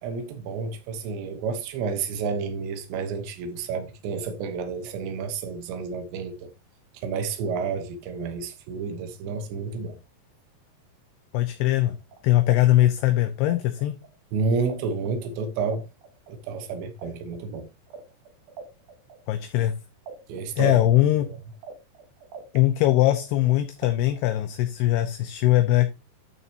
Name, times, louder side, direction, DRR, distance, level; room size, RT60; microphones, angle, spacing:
voice 1, 0.0-6.5 6.9-10.0 14.3-15.9 16.3-17.7 20.3-20.9 21.2-21.4, right 5 dB, 85° right, 3.5 m, -30 dB
voice 2, 11.3-12.0 12.2-14.0 19.3-19.7 20.6-21.3 22.5-25.9, left 14 dB, 80° left, 2.7 m, -21 dB
sound 1, 11.8-14.8 15.0-19.7 20.1-22.6 22.8-24.5, right 5 dB, 60° right, 2.4 m, -44 dB
12.0 x 7.0 x 2.9 m
omnidirectional pair, 5.0 m